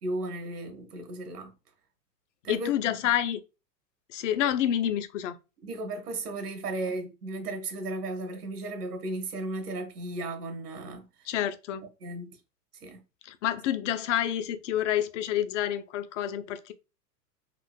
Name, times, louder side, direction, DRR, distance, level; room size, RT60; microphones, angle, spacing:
voice 1, 0.0-1.5 2.4-3.0 5.6-11.1 12.0-12.3 12.8-13.0, right 2 dB, 70° right, 1.1 m, -35 dB
voice 2, 2.5-3.4 4.1-5.4 11.3-11.8 13.2-16.7, left 11 dB, 50° left, 0.5 m, -28 dB
3.7 x 2.5 x 2.2 m
figure-of-eight pair, 100°, 48 cm